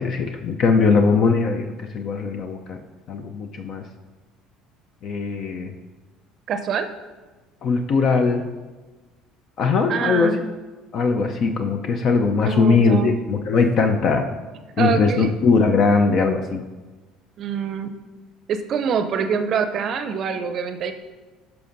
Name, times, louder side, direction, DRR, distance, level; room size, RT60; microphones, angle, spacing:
voice 1, 0.0-2.8 3.1-3.8 5.0-5.7 7.6-8.5 9.6-10.4 10.9-14.3 14.8-16.6, left 4 dB, 50° left, 5 dB, 0.5 m, -20 dB
voice 2, 6.5-6.9 9.9-10.4 12.5-13.1 14.8-15.3 17.4-17.9 18.5-20.9, right 6 dB, 50° right, 9 dB, 0.6 m, -25 dB
11.5 x 5.9 x 2.6 m, 1.3 s
hypercardioid pair, 60°, 0 cm